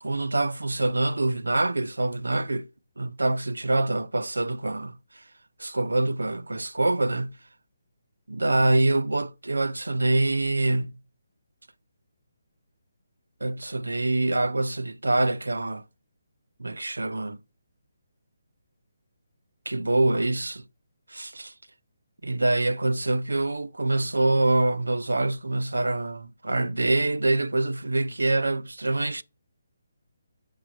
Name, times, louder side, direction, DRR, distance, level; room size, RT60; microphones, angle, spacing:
voice 1, 0.0-2.7 3.0-5.2 5.6-7.4 8.3-10.9 13.4-15.9 16.6-17.4 19.7-20.7 21.1-21.5 22.2-29.2, right 2 dB, 85° right, 0.5 m, -25 dB
6.9 x 5.1 x 4.4 m
figure-of-eight pair, 150°, 0 cm